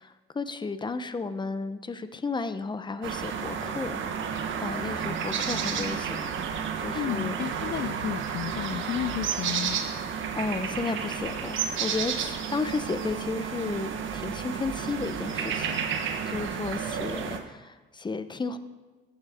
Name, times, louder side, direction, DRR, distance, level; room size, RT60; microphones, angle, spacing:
voice 1, 0.0-4.0 4.6-6.3 6.8-7.4 10.3-15.9 16.3-18.6, left 4 dB, 25° left, 11 dB, 0.9 m, -33 dB
sound 1, 3.0-17.4, right 7 dB, 75° right, 1.4 m, -31 dB
voice 2, 6.9-9.8, left 12 dB, 60° left, 12 dB, 0.5 m, -32 dB
14.5 x 11.5 x 3.7 m, 1.3 s
cardioid pair, 90°, 20 cm